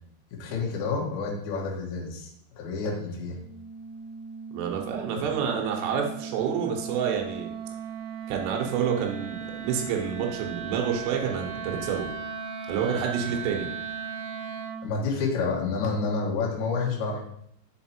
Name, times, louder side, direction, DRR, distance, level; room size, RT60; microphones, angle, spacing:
voice 1, 0.3-3.4 5.1-5.2 14.8-17.2, left 4 dB, 75° left, -2 dB, 1.7 m, -29 dB
Wind instrument woodwind instrument, 3.4-14.9, right 6 dB, 75° right, 2.3 m, -37 dB
voice 2, 4.5-7.5 8.3-12.1 12.7-13.7, right 7 dB, 90° right, 1 dB, 3.6 m, -28 dB
7.1 x 4.2 x 4.3 m, 0.71 s
omnidirectional pair, 5.6 m